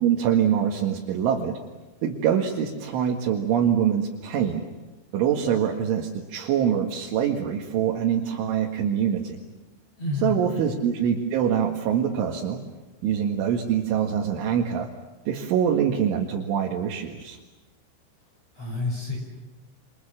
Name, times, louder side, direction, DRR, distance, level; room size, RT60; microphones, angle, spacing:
voice 1, 0.0-1.6 2.0-4.6 5.1-9.4 10.2-12.6 13.0-14.9 15.3-17.4, right 8 dB, 75° right, 0 dB, 4.3 m, -24 dB
voice 2, 10.0-10.6 18.5-19.2, left 3 dB, 30° left, 0 dB, 6.6 m, -29 dB
28.5 x 27.5 x 7.4 m, 1.1 s
omnidirectional pair, 5.6 m